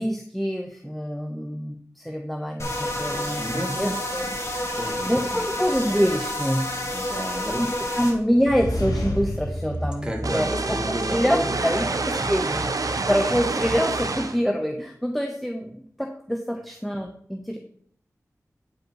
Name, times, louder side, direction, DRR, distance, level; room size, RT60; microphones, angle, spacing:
voice 1, 0.0-4.8 5.0-6.6 7.6-7.7 7.9-17.6, equal, ahead, 3 dB, 0.9 m, -26 dB
sound 1, 2.6-8.1, left 1 dB, 50° left, 2.1 m, -29 dB
voice 2, 3.4-4.3 4.7-5.4 6.9-7.6 9.8-12.1 12.8-13.0, equal, 15° right, 1 dB, 2.3 m, -33 dB
sound 2, 8.3-11.3, equal, 80° left, 2.0 m, -30 dB
sound 3, 10.2-14.4, right 3 dB, 70° right, 0.8 m, -27 dB
8.9 x 5.4 x 4.7 m, 0.64 s
cardioid pair, 40°, 6 cm